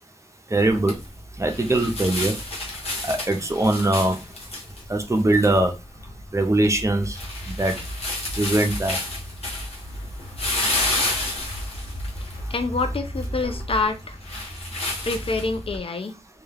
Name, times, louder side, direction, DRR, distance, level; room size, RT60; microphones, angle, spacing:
voice 1, 0.5-1.0 1.4-2.3 3.0-4.2 4.9-5.7 6.3-7.2 7.5-7.7 8.4-8.9, right 2 dB, 30° right, 0.6 m, -21 dB
sound 1, 0.6-15.8, left 1 dB, 85° left, 0.9 m, -31 dB
voice 2, 12.2-14.2 15.1-16.1, left 3 dB, 65° left, 0.4 m, -27 dB
2.3 x 2.1 x 3.3 m
wide cardioid pair, 60°, 10 cm